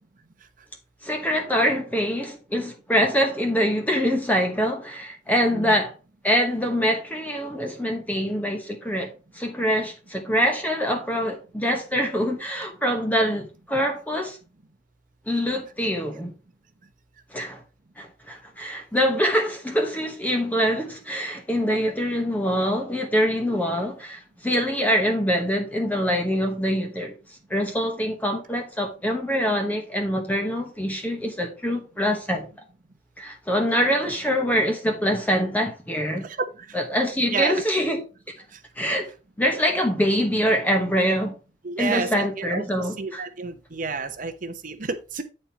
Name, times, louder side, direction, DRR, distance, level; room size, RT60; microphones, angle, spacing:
voice 1, 1.0-5.9 6.2-14.4 15.3-16.3 17.3-17.6 18.0-32.5 33.2-36.3 36.7-38.0 38.8-39.1 39.4-41.4 41.8-43.2, equal, 10° left, 1.0 m, -24 dB
voice 2, 37.3-37.9 41.6-45.2, right 4 dB, 45° right, 0.9 m, -31 dB
8.8 x 4.4 x 4.4 m
head